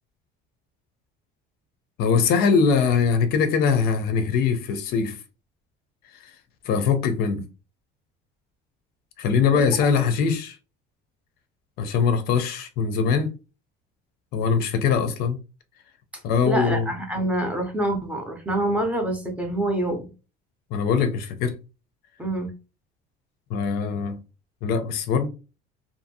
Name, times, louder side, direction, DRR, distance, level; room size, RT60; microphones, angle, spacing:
voice 1, 2.0-5.2 6.2-6.3 6.7-7.4 9.2-10.6 11.8-13.3 14.3-15.4 16.2-16.9 20.7-21.6 23.5-24.2 24.6-25.3, left 6 dB, 50° left, 0.4 m, -22 dB
voice 2, 16.4-20.1 22.2-22.5, right 1 dB, 5° right, 0.5 m, -26 dB
2.6 x 2.6 x 2.6 m
cardioid pair, 180°, 20 cm